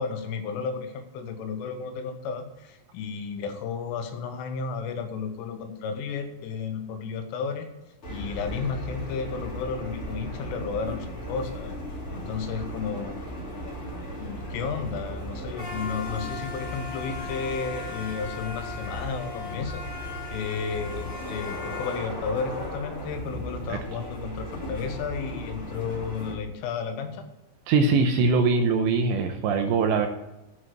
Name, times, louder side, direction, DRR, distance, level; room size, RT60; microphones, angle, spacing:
voice 1, 0.0-7.7 8.1-11.7 12.1-13.2 14.2-19.8 20.3-27.3, left 5 dB, 85° left, 7 dB, 3.6 m, -33 dB
sound 1, 8.0-26.3, left 1 dB, 30° left, 3.7 m, -36 dB
voice 2, 27.7-30.1, right 4 dB, 80° right, 6 dB, 2.7 m, -22 dB
10.0 x 6.4 x 7.6 m, 0.96 s
omnidirectional pair, 5.6 m